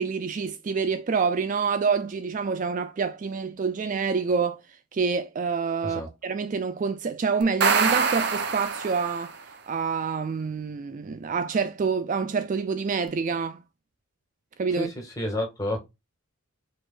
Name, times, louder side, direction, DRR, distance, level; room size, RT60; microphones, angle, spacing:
voice 1, 0.0-4.6 4.9-9.3 9.7-13.6 14.6-14.9, right 5 dB, 35° right, 0.3 m, -27 dB
sound 1, 7.4-9.4, right 5 dB, 50° right, 0.7 m, -24 dB
voice 2, 14.7-15.8, left 1 dB, 15° left, 1.9 m, -30 dB
4.9 x 3.9 x 2.4 m
head